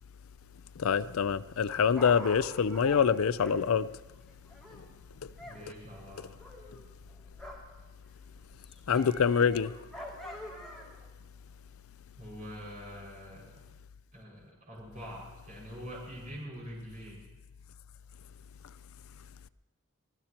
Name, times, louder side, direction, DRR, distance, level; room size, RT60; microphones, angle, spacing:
voice 1, 0.8-3.9 8.9-9.7, left 6 dB, 70° left, 0.4 m, -25 dB
Dog, 1.6-5.6 5.9-7.8 8.1-11.0 11.7-11.8, left 1 dB, ahead, 2.6 m, -46 dB
voice 2, 5.4-6.3 12.2-13.6 14.1-17.3, equal, 35° right, 5.6 m, -45 dB
24.0 x 17.5 x 2.9 m
head